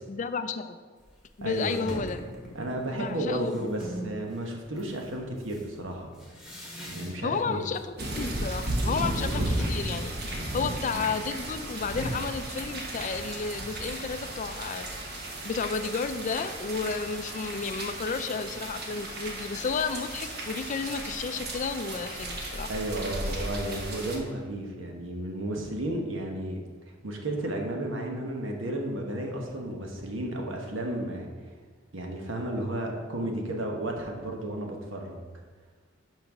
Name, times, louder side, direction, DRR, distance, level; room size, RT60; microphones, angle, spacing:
voice 1, 0.1-0.8 1.4-2.2 2.9-3.5 7.2-14.9 15.4-22.7, left 5 dB, 40° left, 10 dB, 0.4 m, -32 dB
sound 1, 1.0-1.1 1.5-4.2 4.8-7.4 7.7-8.2 8.5-13.2, equal, ahead, 1.4 m, -41 dB
voice 2, 1.4-1.9 2.5-6.1 6.9-7.6 10.6-10.8 22.7-26.6 27.0-31.3 31.9-35.2, right 1 dB, 75° right, 2 dB, 1.1 m, -33 dB
sound 2, 8.0-24.2, right 1 dB, 55° right, 1.2 m, -34 dB
5.8 x 5.3 x 6.0 m, 1.5 s
head